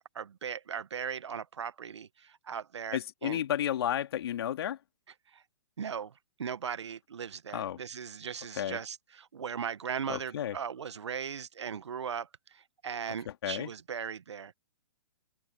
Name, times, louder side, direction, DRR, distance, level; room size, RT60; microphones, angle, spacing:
voice 1, 0.0-3.4 5.3-5.4 5.8-6.1 6.4-12.3 12.8-14.5, right 7 dB, 75° right, 1.4 m, -38 dB
voice 2, 2.9-4.8 7.5-7.8 8.5-8.8 10.1-10.6 13.3-13.7, left 10 dB, 60° left, 2.3 m, -32 dB
hypercardioid pair, 130°, 15 cm